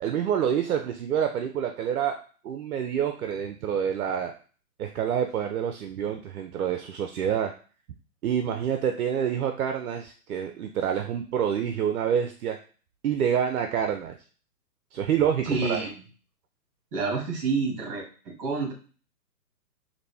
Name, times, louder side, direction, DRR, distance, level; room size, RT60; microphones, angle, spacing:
voice 1, 0.0-2.2 2.4-4.3 4.8-7.5 8.2-12.6 13.0-14.2 14.9-15.9, right 8 dB, 65° right, 6 dB, 0.6 m, -27 dB
voice 2, 15.4-16.0 16.9-18.7, right 4 dB, 35° right, 0 dB, 1.7 m, -28 dB
4.2 x 2.6 x 3.3 m, 0.39 s
hypercardioid pair, 155°, 48 cm